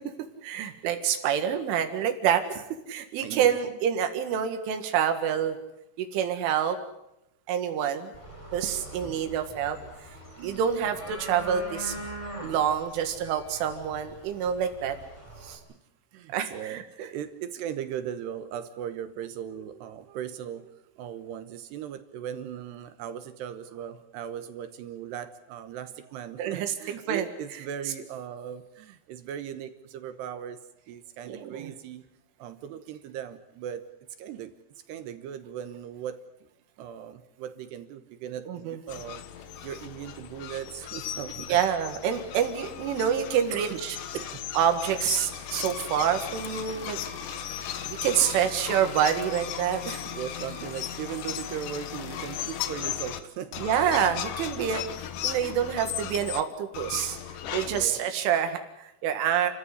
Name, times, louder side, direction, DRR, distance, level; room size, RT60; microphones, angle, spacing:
voice 1, 0.4-5.6 6.0-6.8 7.5-8.1 8.5-9.8 10.4-12.0 12.4-15.0 15.4-15.6 16.3-16.8 26.4-26.7 27.1-27.3 31.3-31.7 38.5-38.8 41.5-44.0 44.6-47.0 48.0-50.0 53.6-54.8 55.2-57.2 57.5-59.5, right 9 dB, 90° right, 7 dB, 4.3 m, -27 dB
voice 2, 3.2-3.7 8.5-9.3 10.2-10.6 15.7-15.8 16.1-30.6 30.9-32.0 32.4-33.9 34.2-34.5 34.9-36.2 36.8-41.6 43.5-43.8 44.1-44.4 48.2-48.4 50.1-53.7 57.6-58.1, right 9 dB, 70° right, 10 dB, 3.0 m, -38 dB
sound 1, 8.1-15.6, right 1 dB, 5° left, 4.4 m, -43 dB
sound 2, 38.9-53.2 53.5-56.4 56.7-57.9, left 10 dB, 65° left, 2.2 m, -36 dB
Bowed string instrument, 46.2-51.7, right 5 dB, 90° left, 7.4 m, -48 dB
29.5 x 15.0 x 10.0 m, 0.86 s
omnidirectional pair, 5.4 m